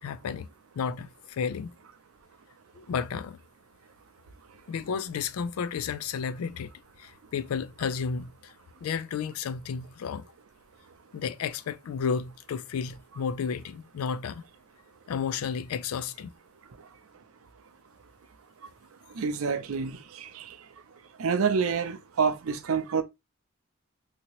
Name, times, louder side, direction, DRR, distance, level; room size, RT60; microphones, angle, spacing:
voice 1, 0.0-0.5 0.8-1.7 2.7-3.4 4.7-6.7 7.0-8.5 8.8-10.3 11.1-14.4 15.1-16.3, left 6 dB, 85° left, 0.3 m, -32 dB
voice 2, 19.2-20.4 21.2-23.0, right 5 dB, 75° right, 0.5 m, -27 dB
2.8 x 2.8 x 2.8 m
head